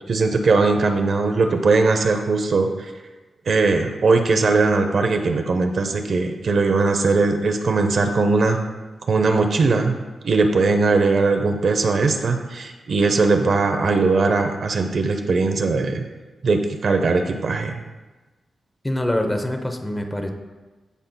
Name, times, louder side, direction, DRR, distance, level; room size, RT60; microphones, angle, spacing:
voice 1, 0.1-2.7 3.5-8.6 9.0-9.9 10.2-16.1 16.4-17.8, right 3 dB, 50° right, 6 dB, 0.6 m, -19 dB
voice 2, 18.8-20.3, left 1 dB, 10° left, 4 dB, 0.7 m, -24 dB
15.0 x 5.5 x 2.2 m, 1.2 s
wide cardioid pair, 160°, 0 cm